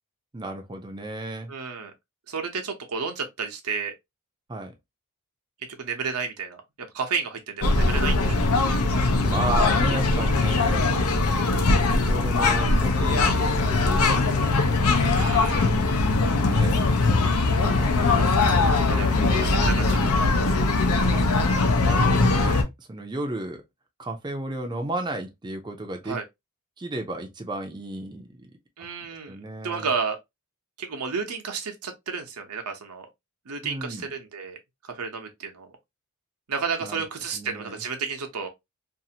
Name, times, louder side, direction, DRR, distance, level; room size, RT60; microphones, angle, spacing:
voice 1, 0.3-1.5 4.5-4.7 9.2-10.8 11.7-15.8 16.5-17.0 17.6-18.7 19.6-20.4 21.0-21.3 21.8-23.6 24.0-26.2 26.8-28.6 29.2-29.9 33.6-34.1 36.8-37.0 37.3-37.8, right 2 dB, 20° right, 0.5 m, -34 dB
voice 2, 1.5-1.9 2.3-3.9 5.8-8.8 10.1-10.3 15.1-15.7 18.1-20.1 26.0-26.2 28.8-29.4 29.6-30.2 30.8-33.1 33.5-34.6 34.8-35.7 36.5-38.5, right 5 dB, 85° right, 0.8 m, -32 dB
sound 1, 7.6-22.6, left 3 dB, 75° left, 0.6 m, -21 dB
2.6 x 2.5 x 2.8 m
head